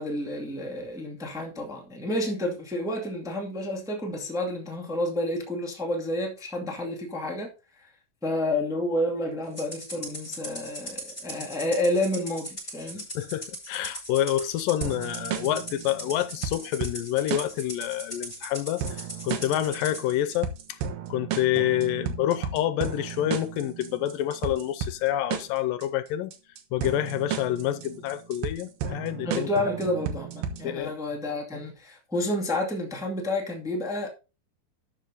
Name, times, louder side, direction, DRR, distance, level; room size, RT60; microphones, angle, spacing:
voice 1, 0.0-7.5 7.8-7.9 8.2-13.0 29.2-34.1, left 1 dB, ahead, 1.4 m, -30 dB
Rattle (instrument), 9.6-20.0, right 1 dB, 15° left, 6.1 m, -39 dB
voice 2, 13.2-20.5 21.1-26.3 26.7-29.5 30.6-30.9, left 12 dB, 80° left, 2.4 m, -28 dB
sound 1, 14.8-30.8, right 7 dB, 75° right, 2.7 m, -34 dB
12.5 x 5.7 x 4.0 m
omnidirectional pair, 4.0 m